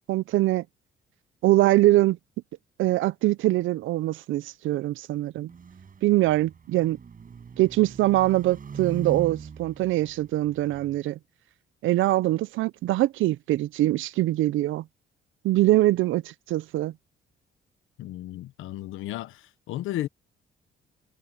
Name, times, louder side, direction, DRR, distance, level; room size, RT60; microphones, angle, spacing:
voice 1, 0.1-0.6 1.4-2.2 2.8-5.5 6.0-7.0 7.6-11.2 11.8-14.8 15.4-16.9, right 16 dB, 80° right, 0.6 m, -23 dB
sound 1, 5.5-11.0, right 6 dB, 45° right, 6.9 m, -40 dB
voice 2, 18.0-20.1, left 14 dB, 90° left, 1.1 m, -34 dB
cardioid pair, 90°, 20 cm